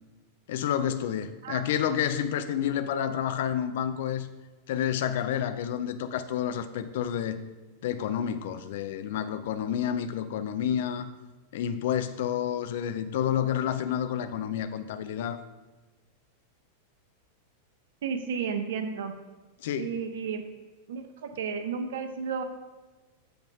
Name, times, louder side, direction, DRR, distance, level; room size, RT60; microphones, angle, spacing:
voice 1, 0.5-4.3 4.7-7.4 7.8-11.1 11.5-15.4 19.6-19.9, left 9 dB, 55° left, 10 dB, 0.5 m, -29 dB
voice 2, 18.0-19.1 19.8-20.4 20.9-22.4, right 6 dB, 60° right, 7 dB, 0.7 m, -32 dB
7.8 x 3.4 x 5.4 m, 1.3 s
figure-of-eight pair, 90°, 0 cm